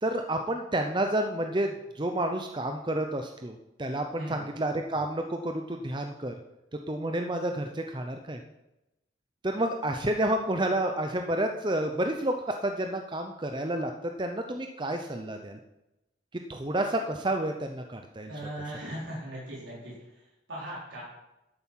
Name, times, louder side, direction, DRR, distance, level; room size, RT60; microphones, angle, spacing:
voice 1, 0.0-6.3 6.9-8.4 9.4-12.3 12.6-15.6 16.3-18.3, right 1 dB, 25° right, 4 dB, 0.7 m, -30 dB
voice 2, 18.3-19.9 20.5-21.0, right 1 dB, 85° right, -6 dB, 4.6 m, -38 dB
12.0 x 8.3 x 5.8 m, 0.93 s
head